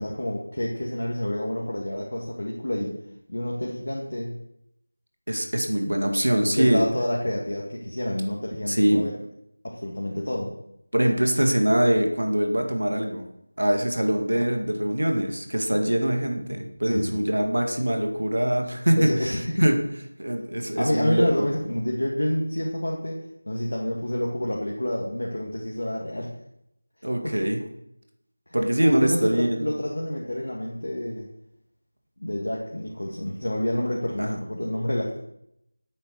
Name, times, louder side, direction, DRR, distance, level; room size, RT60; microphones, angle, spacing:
voice 1, 0.0-3.0 3.3-4.4 6.5-9.1 9.6-10.5 16.8-17.3 19.0-19.7 20.8-26.3 27.2-27.4 28.8-31.3 32.2-35.2, left 1 dB, 60° left, -2 dB, 2.0 m, -28 dB
voice 2, 5.3-6.8 8.7-9.1 10.9-13.2 13.6-19.7 20.2-21.5 27.0-27.6 28.5-29.7 34.2-34.4, right 1 dB, 65° right, 4 dB, 2.0 m, -23 dB
8.6 x 8.5 x 6.4 m, 0.80 s
figure-of-eight pair, 170°, 0 cm